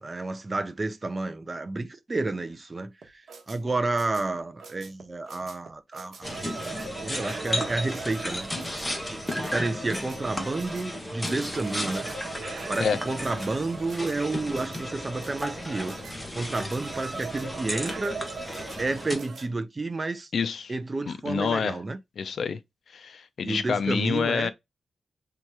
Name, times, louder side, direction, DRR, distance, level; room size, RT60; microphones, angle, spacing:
voice 1, 0.0-8.5 9.1-12.1 12.7-18.2 18.8-20.3 20.7-22.0 23.4-24.5, right 3 dB, 25° right, 0.6 m, -31 dB
sound 1, 3.0-19.5, right 4 dB, 65° right, 1.1 m, -41 dB
sound 2, 6.2-19.2, left 1 dB, 5° left, 0.9 m, -34 dB
voice 2, 20.3-20.7 21.1-21.8 22.2-22.6 22.9-24.5, left 6 dB, 60° left, 0.5 m, -27 dB
3.5 x 2.9 x 4.6 m
wide cardioid pair, 145°, 0 cm